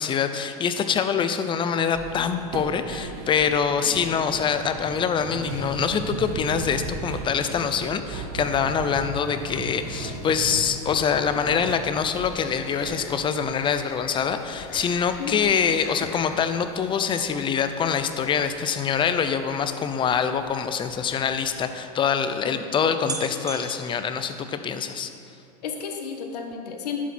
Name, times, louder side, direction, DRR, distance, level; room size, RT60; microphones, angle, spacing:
voice 1, 0.0-25.1, left 7 dB, 25° left, 9 dB, 0.6 m, -25 dB
sound 1, 1.9-14.2 14.5-14.6 15.0-15.1, right 3 dB, 70° right, 1.4 m, -36 dB
sound 2, 8.4-21.6, left 8 dB, 70° left, 0.7 m, -45 dB
sound 3, 17.1-20.7 21.6-21.7 21.8-22.0 22.6-22.7 23.0-25.0 25.4-25.8 26.0-26.1, right 4 dB, 20° right, 0.9 m, -41 dB
voice 2, 25.6-27.0, left 7 dB, 90° left, 4 dB, 1.3 m, -33 dB
11.0 x 7.4 x 4.4 m, 2.5 s
supercardioid pair, 120°, 20 cm